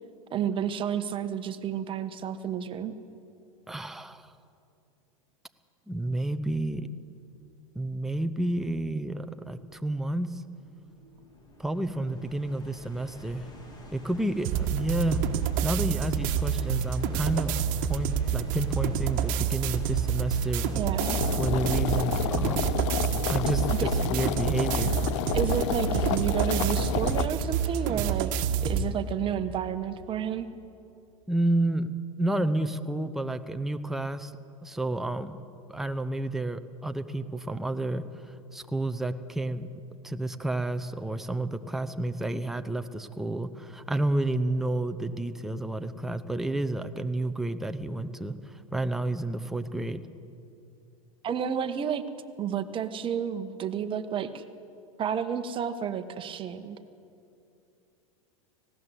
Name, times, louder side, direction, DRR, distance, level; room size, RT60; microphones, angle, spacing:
voice 1, 0.3-3.0 20.7-21.2 23.8-23.9 25.3-28.3 28.6-30.5 51.2-52.0 52.4-54.4 55.0-56.8, right 8 dB, 30° right, 9 dB, 1.3 m, -31 dB
voice 2, 3.7-4.3 5.9-6.9 7.7-10.4 11.6-13.5 13.9-15.2 15.6-20.7 21.3-22.9 23.3-24.9 31.3-34.3 34.6-35.4 35.7-39.7 40.0-50.0, right 2 dB, ahead, 8 dB, 0.8 m, -30 dB
sound 1, 9.6-28.2, left 1 dB, 25° left, 3.3 m, -47 dB
sound 2, 14.4-28.9, right 7 dB, 50° right, 1.5 m, -28 dB
sound 3, 21.0-27.3, left 13 dB, 60° left, 0.7 m, -30 dB
19.0 x 17.0 x 8.3 m, 2.6 s
hypercardioid pair, 100°, 18 cm